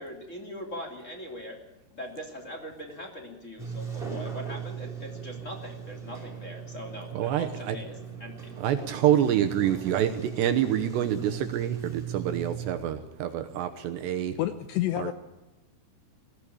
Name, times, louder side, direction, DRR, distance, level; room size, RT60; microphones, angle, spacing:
voice 1, 0.0-1.6 1.9-8.5, left 1 dB, 20° left, 3 dB, 2.3 m, -41 dB
Sliding door, 3.6-12.7, right 8 dB, 10° right, 3.7 m, -39 dB
voice 2, 7.1-7.8 8.6-14.4 15.0-15.1, right 10 dB, 75° right, 8 dB, 2.8 m, -27 dB
voice 3, 14.4-15.1, left 14 dB, 75° left, 10 dB, 2.6 m, -28 dB
20.5 x 15.5 x 8.6 m, 1.0 s
omnidirectional pair, 5.7 m